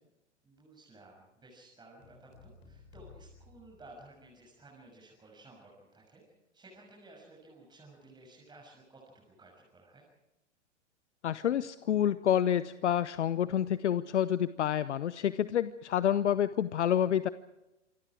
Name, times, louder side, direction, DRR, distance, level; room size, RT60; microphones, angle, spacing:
voice 1, 0.4-6.2 6.5-10.0, right 2 dB, 10° right, -2 dB, 6.5 m, -55 dB
sound 1, 2.0-4.6, left 4 dB, 45° left, 7.2 m, -56 dB
voice 2, 11.2-17.3, left 10 dB, 70° left, 16 dB, 0.8 m, -28 dB
27.0 x 24.0 x 4.8 m, 0.96 s
figure-of-eight pair, 105°, 36 cm